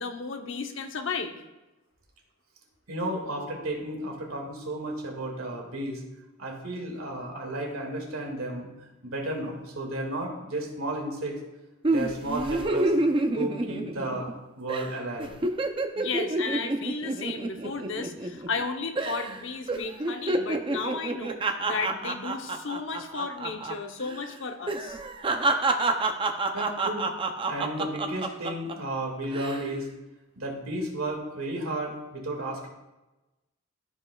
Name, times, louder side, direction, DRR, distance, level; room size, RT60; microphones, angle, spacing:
voice 1, 0.0-1.4 15.9-25.0, left 4 dB, 65° left, 5 dB, 0.8 m, -34 dB
voice 2, 2.9-6.0 6.4-8.7 9.0-11.3 11.9-12.9 13.3-15.3 26.5-27.1 27.5-29.9 30.4-32.7, right 1 dB, 85° right, 0 dB, 2.1 m, -33 dB
sound 1, 11.8-14.4 14.7-14.9 15.2-18.6 19.0-19.4 19.7-23.8 24.0-24.2 24.7-28.7 29.2-29.7, right 2 dB, 25° right, 0.5 m, -28 dB
15.0 x 5.2 x 2.3 m, 1.0 s
head